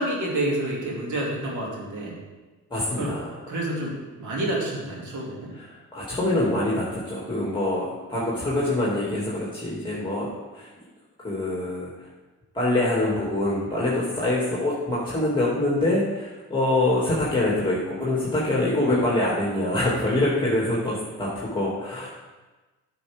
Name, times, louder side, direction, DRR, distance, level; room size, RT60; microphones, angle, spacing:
voice 1, 0.0-2.2 2.9-3.1 3.5-5.5, right 1 dB, 60° right, -3 dB, 2.5 m, -28 dB
voice 2, 2.7-3.4 5.5-10.7 11.2-11.9 12.5-22.1, left 1 dB, 15° left, -6 dB, 2.3 m, -25 dB
9.2 x 6.1 x 3.5 m, 1.2 s
supercardioid pair, 60°, 33 cm